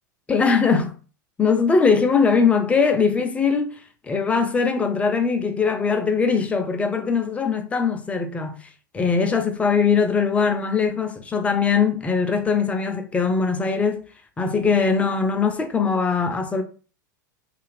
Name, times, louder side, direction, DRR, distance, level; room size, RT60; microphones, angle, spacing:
voice 1, 0.3-1.0 1.4-3.8 4.0-8.6 8.9-14.0 14.4-16.6, left 5 dB, 10° left, 0.4 m, -21 dB
2.5 x 2.4 x 3.1 m
figure-of-eight pair, 90°, 11 cm